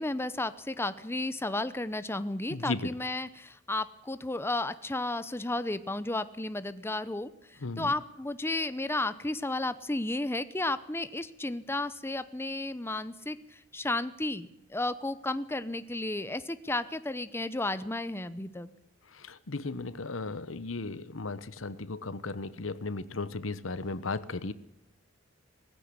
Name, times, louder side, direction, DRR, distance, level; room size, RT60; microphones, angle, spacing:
voice 1, 0.0-18.7, left 2 dB, 10° left, 13 dB, 0.8 m, -33 dB
voice 2, 2.5-2.9 7.6-7.9 19.1-24.5, left 3 dB, 85° left, 15 dB, 1.1 m, -35 dB
18.5 x 15.5 x 9.7 m, 0.79 s
head